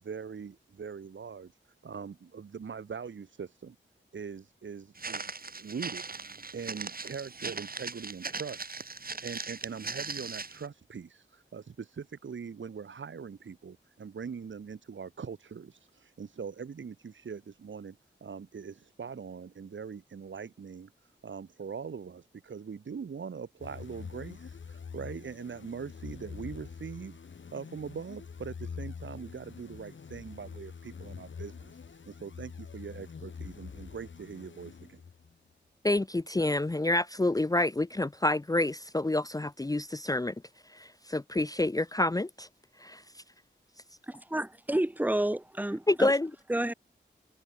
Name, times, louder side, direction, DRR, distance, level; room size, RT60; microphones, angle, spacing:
voice 1, 0.0-1.5 1.8-3.8 4.1-6.1 6.5-8.8 9.2-27.2 27.5-35.0, right 6 dB, 80° right, 2.0 m, -42 dB
Walk footsteps, 5.0-10.6, right 4 dB, 50° right, 1.9 m, -39 dB
sound 1, 23.6-35.4, left 6 dB, 80° left, 2.2 m, -45 dB
voice 2, 35.8-40.3 40.7-42.5 42.8-43.0 45.9-46.3, left 2 dB, 20° left, 0.6 m, -28 dB
voice 3, 44.3-46.1 46.5-46.7, right 1 dB, 10° right, 1.2 m, -29 dB
cardioid pair, 45°, 19 cm